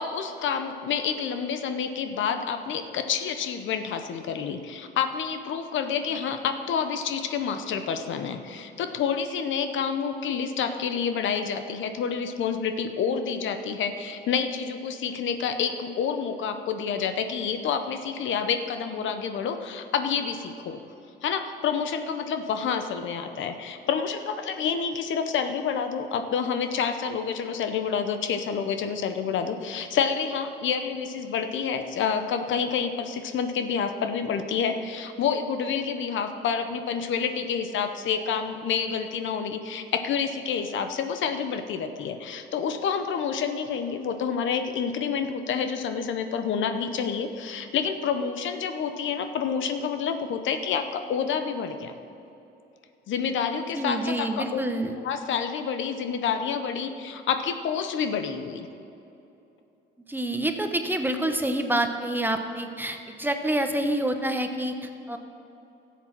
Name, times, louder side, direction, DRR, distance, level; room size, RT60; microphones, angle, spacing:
voice 1, 0.0-20.8 21.2-51.9 53.1-54.6 55.0-58.7, left 6 dB, 75° left, 8 dB, 0.8 m, -28 dB
voice 2, 53.7-54.9 60.1-65.2, right 1 dB, 10° right, 6 dB, 0.9 m, -27 dB
13.0 x 7.4 x 6.0 m, 2.8 s
cardioid pair, 90°, 20 cm